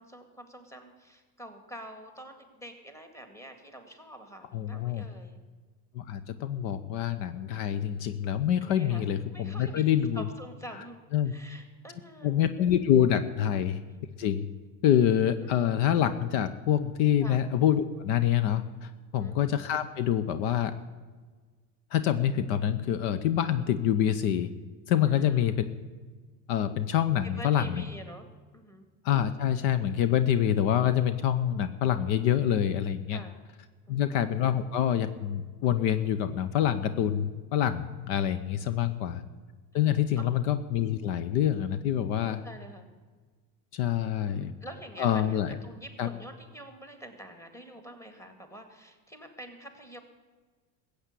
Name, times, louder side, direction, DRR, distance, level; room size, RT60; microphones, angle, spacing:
voice 1, 0.0-5.4 7.5-7.7 8.6-9.1 9.3-12.4 17.2-17.4 19.1-19.4 25.1-25.7 27.4-28.3 28.5-28.9 33.1-33.4 33.9-34.3 38.6-39.0 40.2-40.3 42.3-42.9 44.3-50.0, right 1 dB, 5° left, 6 dB, 2.0 m, -47 dB
voice 2, 4.5-5.0 5.9-10.2 11.1-11.3 12.2-13.8 14.2-14.5 14.8-20.7 21.9-24.5 24.9-25.6 26.5-27.8 29.0-33.2 33.9-39.2 39.7-42.4 43.7-44.5 45.0-45.6 46.0-46.1, left 10 dB, 65° left, 12 dB, 0.9 m, -26 dB
15.0 x 8.2 x 8.3 m, 1.4 s
supercardioid pair, 105°, 49 cm